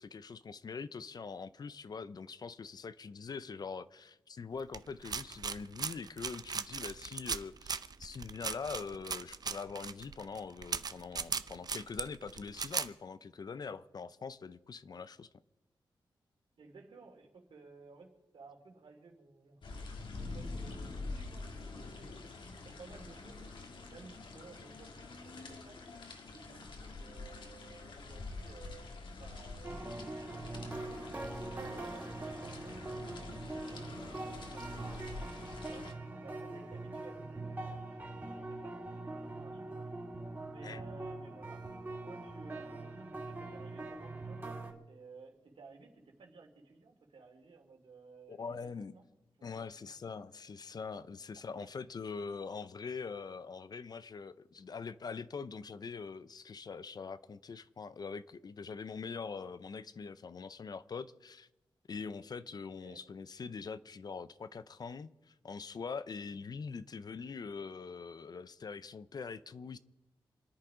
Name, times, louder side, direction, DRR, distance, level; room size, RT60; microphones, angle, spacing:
voice 1, 0.0-15.3 40.6-40.8 48.3-48.9 49.4-61.5 61.9-69.8, left 5 dB, 50° left, 0.6 m, -43 dB
sound 1, 4.7-12.9, right 5 dB, 50° right, 0.6 m, -38 dB
voice 2, 16.6-19.6 20.1-22.3 22.6-23.6 23.9-25.8 26.3-28.9 29.2-35.3 35.6-37.8 38.1-39.9 40.5-41.6 42.0-49.0 49.4-49.9 51.5-51.7 62.8-63.0, right 4 dB, 75° right, 2.9 m, -56 dB
sound 2, 19.6-35.9, left 3 dB, 65° left, 1.8 m, -46 dB
sound 3, 29.6-44.7, right 2 dB, 25° right, 2.6 m, -43 dB
27.5 x 10.5 x 5.0 m
wide cardioid pair, 135°, 9 cm